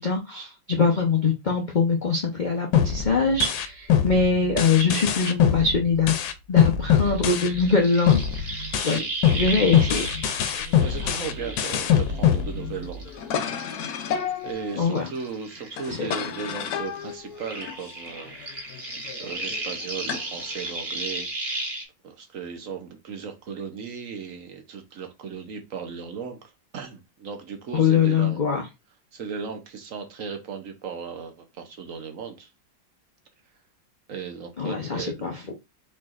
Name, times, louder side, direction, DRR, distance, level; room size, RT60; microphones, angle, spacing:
voice 1, 0.0-6.2 6.5-9.0 9.3-10.1 14.7-15.1 15.9-16.1 27.7-28.6 34.6-35.4, left 5 dB, 45° left, 0.6 m, -23 dB
sound 1, 2.7-7.8 8.1-13.1, left 9 dB, 85° left, 1.4 m, -24 dB
sound 2, 7.0-12.5 12.8-16.2 16.4-21.8, right 2 dB, 35° right, 1.6 m, -35 dB
sound 3, 10.5-20.9, left 7 dB, 65° left, 1.0 m, -35 dB
voice 2, 10.8-13.2 14.4-18.4 19.2-21.7 22.0-28.4 29.1-32.5 34.1-35.4, right 6 dB, 55° right, 1.1 m, -36 dB
4.8 x 4.4 x 2.5 m
omnidirectional pair, 2.1 m